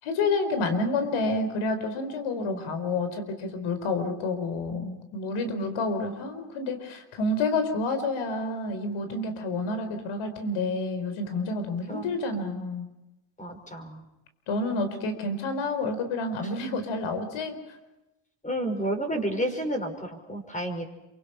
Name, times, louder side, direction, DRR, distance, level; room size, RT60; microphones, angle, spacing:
voice 1, 0.0-12.9 14.5-17.6, left 2 dB, 80° left, 9 dB, 4.8 m, -29 dB
voice 2, 5.5-5.8 11.9-12.1 13.4-14.1 16.4-16.5 18.4-20.9, right 1 dB, 15° left, 5 dB, 5.9 m, -31 dB
27.5 x 25.0 x 5.9 m, 0.97 s
cardioid pair, 100°, 47 cm